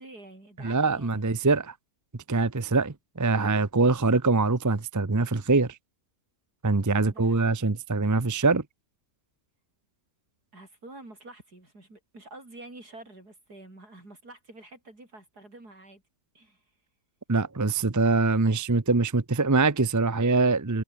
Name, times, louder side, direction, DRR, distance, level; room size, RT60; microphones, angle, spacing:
voice 1, 0.0-1.3 3.8-3.9 7.0-7.5 10.5-16.0 16.3-16.6, right 2 dB, 75° right, 8.0 m, -48 dB
voice 2, 0.6-1.7 2.3-5.7 6.6-8.6 17.3-20.8, right 3 dB, 15° right, 0.7 m, -23 dB
omnidirectional pair, 1.7 m